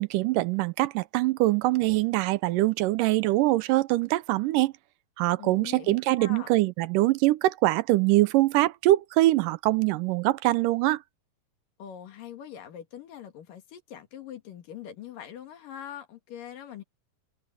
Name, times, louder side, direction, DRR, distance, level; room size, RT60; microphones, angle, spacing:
voice 1, 0.0-4.7 5.2-11.0, right 17 dB, 80° right, 2.1 m, -23 dB
voice 2, 5.4-6.5 11.8-16.8, left 9 dB, 75° left, 3.6 m, -43 dB
omnidirectional pair, 4.0 m